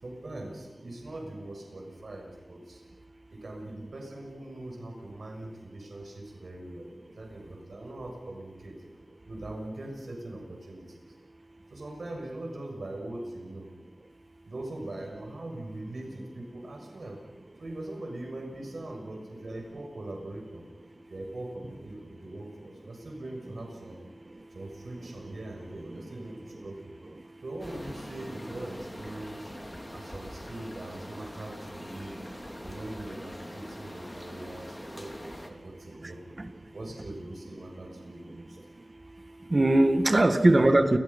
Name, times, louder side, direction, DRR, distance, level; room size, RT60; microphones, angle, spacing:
voice 1, 0.0-2.8 3.3-8.7 9.2-11.0 11.7-13.7 14.4-17.2 17.6-20.7 21.1-24.0 24.5-26.9 27.4-29.5 29.9-32.2 32.6-38.6 40.2-40.8, right 1 dB, 70° right, 6.5 m, -41 dB
voice 2, 25.9-26.3 26.6-26.7 27.2-27.3 29.5-29.9 31.1-31.2 32.1-32.7 34.2-34.8 35.5-35.8 36.0-36.5 38.3-38.8 39.2-41.0, right 2 dB, 40° right, 2.1 m, -26 dB
sound 1, 27.6-35.5, left 1 dB, 20° left, 3.7 m, -44 dB
29.0 x 21.0 x 5.6 m
wide cardioid pair, 70°, 0 cm